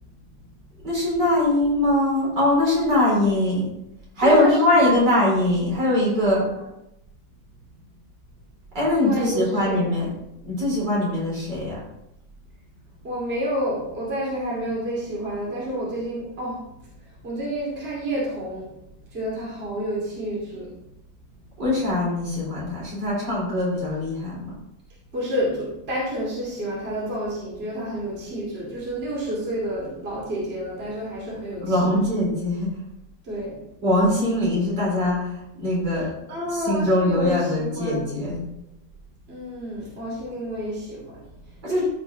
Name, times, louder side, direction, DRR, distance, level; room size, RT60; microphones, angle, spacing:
voice 1, 0.8-3.7 4.2-6.5 8.7-10.1 10.4-11.8 21.6-24.5 31.6-32.7 33.8-36.1 36.5-38.5 41.6-41.8, left 1 dB, 60° right, -5 dB, 4.7 m, -22 dB
voice 2, 4.2-5.2 8.9-9.9 13.0-16.7 17.2-18.7 19.1-20.8 21.3-21.4 25.1-32.0 33.2-33.6 36.3-38.1 39.3-41.8, right 1 dB, 30° right, -5 dB, 2.7 m, -29 dB
14.0 x 5.1 x 3.9 m, 0.85 s
omnidirectional pair, 2.1 m